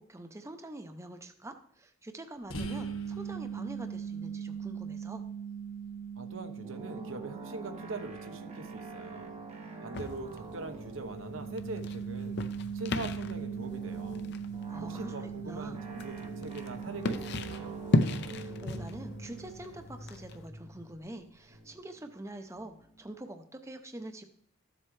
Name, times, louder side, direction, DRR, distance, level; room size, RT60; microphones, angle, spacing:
voice 1, 0.0-5.2 14.7-15.8 18.4-24.2, right 1 dB, 15° right, 7 dB, 0.6 m, -45 dB
sound 1, 2.5-20.0, right 7 dB, 85° left, 1.4 m, -41 dB
voice 2, 6.2-9.4 9.8-12.4 12.7-14.2 14.8-17.7, right 3 dB, 75° right, 8 dB, 0.9 m, -42 dB
sound 2, 6.6-23.2, right 2 dB, 30° right, 1.0 m, -47 dB
sound 3, 9.9-20.5, left 2 dB, 55° left, 0.6 m, -36 dB
13.5 x 7.5 x 3.2 m, 0.65 s
head